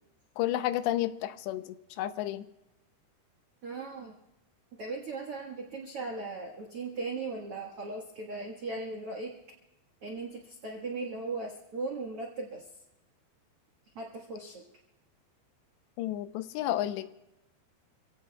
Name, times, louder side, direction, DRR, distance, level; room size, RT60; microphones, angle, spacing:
voice 1, 0.4-2.5 16.0-17.1, left 13 dB, 90° left, 12 dB, 2.9 m, -31 dB
voice 2, 3.6-4.1 4.8-9.3 10.0-12.6 13.9-14.6, right 3 dB, 80° right, 0 dB, 1.3 m, -38 dB
28.5 x 16.5 x 2.3 m, 0.93 s
omnidirectional pair, 4.9 m